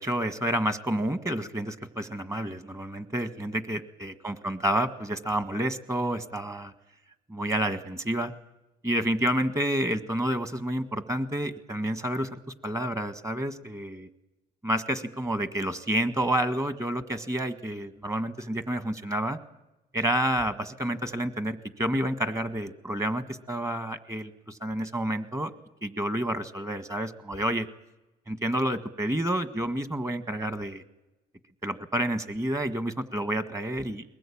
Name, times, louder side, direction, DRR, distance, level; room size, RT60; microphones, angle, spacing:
voice 1, 0.0-6.7 7.3-8.3 8.8-14.1 14.6-19.4 19.9-25.5 25.8-27.7 28.3-30.8 31.6-34.0, right 1 dB, 20° right, 10 dB, 1.7 m, -29 dB
22.5 x 19.5 x 8.7 m, 0.97 s
cardioid pair, 110°, 17 cm